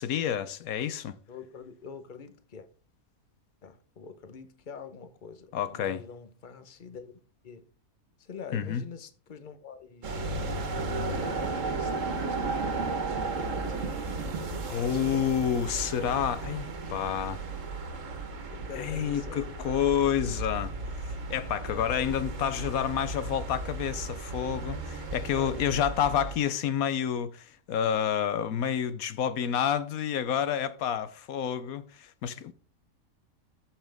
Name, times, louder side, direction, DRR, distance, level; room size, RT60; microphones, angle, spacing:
voice 1, 0.0-1.2 5.5-6.0 8.5-8.8 14.7-17.4 18.8-20.7 21.3-32.5, left 9 dB, 80° left, 1.2 m, -29 dB
voice 2, 1.0-2.7 3.6-7.1 7.4-7.7 8.2-10.3 11.0-13.8 14.4-15.4 15.8-15.9 17.6-17.7 18.5-19.4 25.4-25.6 32.3-32.5, left 5 dB, 35° left, 1.1 m, -45 dB
sound 1, 10.0-26.4, right 3 dB, 65° right, 1.7 m, -34 dB
14.0 x 5.8 x 3.5 m
omnidirectional pair, 1.5 m